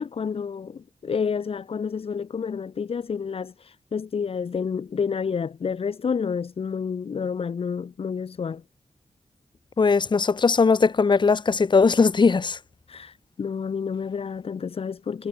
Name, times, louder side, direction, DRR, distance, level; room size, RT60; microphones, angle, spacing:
voice 1, 0.0-8.6 12.9-15.3, left 6 dB, 70° left, 1.2 m, -29 dB
voice 2, 9.8-12.6, left 4 dB, 50° left, 1.2 m, -19 dB
cardioid pair, 70°, 10 cm